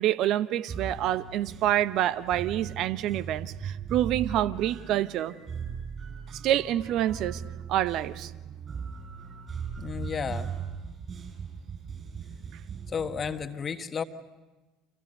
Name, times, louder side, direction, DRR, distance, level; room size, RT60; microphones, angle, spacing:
voice 1, 0.0-5.3 6.4-7.4 7.7-8.3, right 12 dB, 55° right, 15 dB, 0.9 m, -27 dB
sound 1, 0.7-13.4, right 6 dB, 35° right, 7.5 m, -39 dB
voice 2, 9.8-10.5 12.9-14.0, left 6 dB, 30° left, 8 dB, 1.5 m, -32 dB
29.5 x 27.0 x 6.7 m, 1.2 s
figure-of-eight pair, 65°, 0 cm